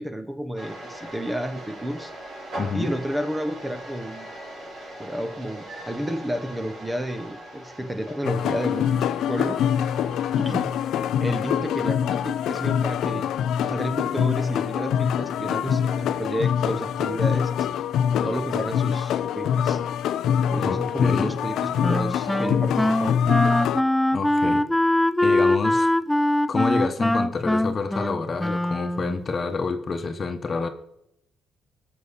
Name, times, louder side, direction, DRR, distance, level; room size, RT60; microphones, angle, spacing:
voice 1, 0.0-2.1 2.7-4.3 5.0-9.6 10.4-10.9 11.2-13.4 13.6-17.7 18.2-19.8 20.4-23.2, equal, 10° right, 8 dB, 1.0 m, -31 dB
sound 1, 0.6-10.6, right 1 dB, 65° right, 5.1 m, -40 dB
voice 2, 2.6-2.9 20.6-21.3 24.1-24.6 25.2-25.9 26.5-30.7, left 4 dB, 40° left, 7 dB, 1.2 m, -28 dB
sound 2, 8.2-23.8, left 9 dB, 80° left, 0.5 m, -24 dB
Wind instrument woodwind instrument, 21.8-29.2, left 1 dB, 5° left, 0.4 m, -22 dB
18.0 x 6.8 x 4.2 m, 0.78 s
cardioid pair, 90°, 0 cm